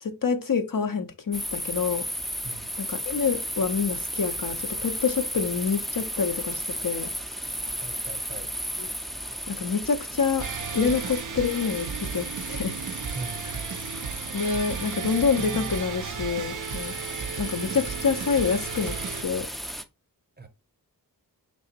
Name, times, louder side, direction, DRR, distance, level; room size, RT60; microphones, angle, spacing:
voice 1, 0.0-2.0 2.8-4.6 4.8-7.1 8.8-8.9 9.5-10.5 10.7-12.8 14.3-16.9 17.4-19.0 19.2-19.5, left 5 dB, 60° left, 0.7 m, -27 dB
sound 1, 1.3-19.8, equal, ahead, 0.4 m, -35 dB
voice 2, 7.7-8.5 13.1-13.5 20.4-20.5, right 3 dB, 25° right, 0.8 m, -40 dB
sound 2, 10.4-19.2, right 7 dB, 55° right, 0.5 m, -34 dB
4.9 x 3.4 x 2.8 m
wide cardioid pair, 50°, 37 cm